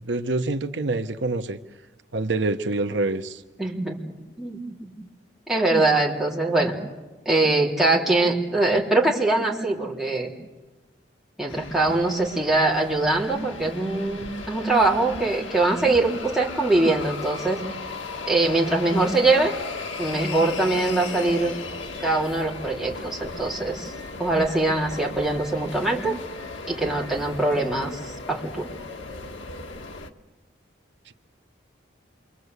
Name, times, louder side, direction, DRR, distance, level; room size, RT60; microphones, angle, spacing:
voice 1, 0.0-1.6 2.1-3.4 31.1-31.2, right 2 dB, 75° right, 8 dB, 1.0 m, -26 dB
voice 2, 3.6-4.0 4.4-4.9 5.5-6.8 7.3-10.3 11.4-17.6 18.3-19.5 20.0-21.5 22.0-23.9 24.2-26.1 26.7-28.6, right 2 dB, ahead, -4 dB, 3.8 m, -23 dB
sound 1, 11.5-30.1, left 3 dB, 85° left, 1.6 m, -36 dB
28.0 x 24.0 x 8.1 m, 1.2 s
head